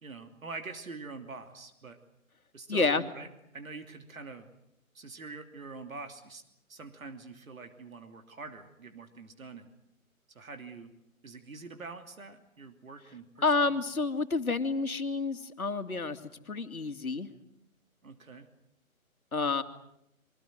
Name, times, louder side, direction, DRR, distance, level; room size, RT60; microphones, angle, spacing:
voice 1, 0.0-2.0 2.5-3.3 3.5-4.5 4.9-6.4 6.7-9.7 10.3-10.9 11.2-13.5 18.0-18.5, right 4 dB, 75° right, 6 dB, 3.0 m, -45 dB
voice 2, 2.7-3.0 13.4-16.2 16.5-17.3 19.3-19.6, left 3 dB, 85° left, 8 dB, 2.5 m, -29 dB
26.5 x 24.0 x 7.8 m, 0.79 s
figure-of-eight pair, 150°, 42 cm